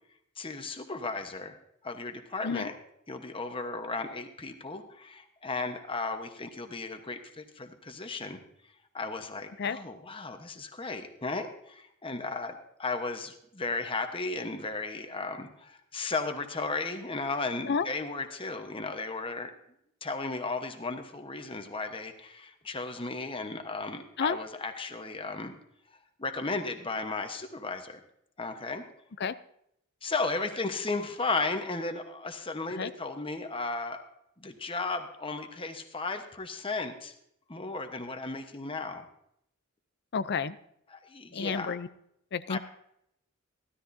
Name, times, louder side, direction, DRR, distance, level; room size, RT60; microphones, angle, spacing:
voice 1, 0.4-1.6 1.8-2.7 3.1-8.4 8.9-19.5 20.0-25.5 26.2-28.0 28.4-28.8 30.0-34.0 34.4-37.1 37.5-39.0 40.9-41.8 42.5-42.6, left 3 dB, 25° left, 6 dB, 1.1 m, -35 dB
voice 2, 40.1-40.6 41.3-41.9 42.3-42.6, left 5 dB, 55° left, 15 dB, 0.5 m, -30 dB
15.5 x 13.0 x 2.7 m, 0.74 s
head